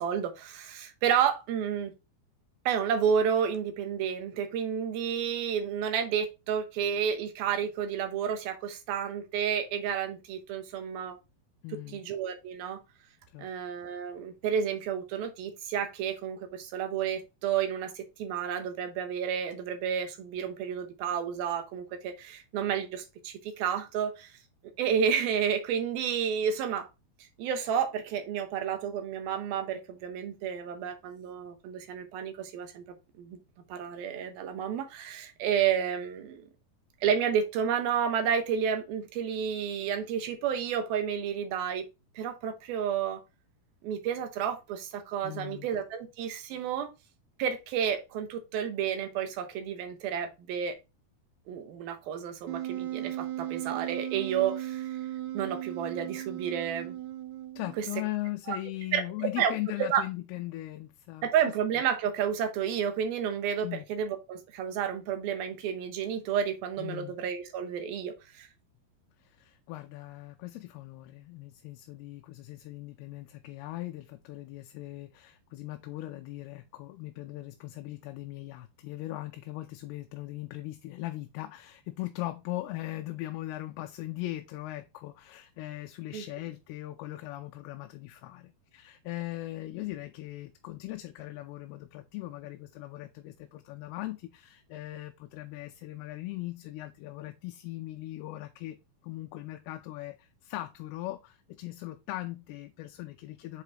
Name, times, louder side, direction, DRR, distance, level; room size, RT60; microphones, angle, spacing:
voice 1, 0.0-1.9 2.7-11.2 11.7-12.8 13.4-24.4 24.8-26.9 27.4-32.8 33.2-33.4 33.7-36.4 37.0-41.8 42.2-43.2 43.8-46.9 47.4-50.8 51.5-54.9 55.3-57.0 57.8-57.9 58.5-58.6 58.9-59.5 59.9-60.0 61.2-68.5 86.1-86.2, right 8 dB, 75° right, 2.9 m, -31 dB
voice 2, 11.6-12.1 13.3-13.5 45.2-45.7 57.6-61.5 63.6-63.9 66.8-67.2 69.2-98.8 99.0-103.6, left 17 dB, 85° left, 2.6 m, -39 dB
Wind instrument woodwind instrument, 52.5-57.9, right 13 dB, 90° right, 2.9 m, -36 dB
7.5 x 4.8 x 2.9 m
omnidirectional pair, 4.5 m